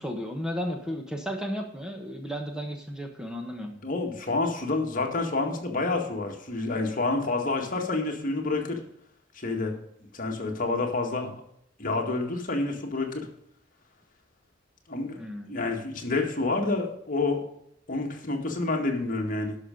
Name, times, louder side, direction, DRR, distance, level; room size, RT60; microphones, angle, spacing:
voice 1, 0.0-3.7 15.2-15.5, equal, 5° right, 3 dB, 1.1 m, -34 dB
voice 2, 3.8-8.8 9.3-9.8 10.1-11.4 11.8-13.3 14.9-15.2 15.5-17.4 17.9-19.6, left 3 dB, 45° left, 2 dB, 2.0 m, -28 dB
11.5 x 6.3 x 5.3 m, 0.73 s
head